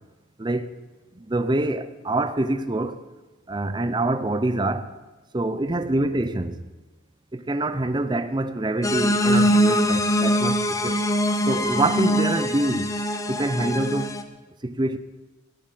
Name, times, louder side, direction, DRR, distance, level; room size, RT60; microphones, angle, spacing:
voice 1, 0.4-0.8 1.1-3.0 3.5-4.9 5.3-6.6 7.3-11.0 11.5-12.9 13.3-14.2 14.6-15.0, right 2 dB, 20° right, 0.6 m, -25 dB
sound 1, 8.8-14.2, equal, 15° left, 0.8 m, -22 dB
17.5 x 7.4 x 9.8 m
head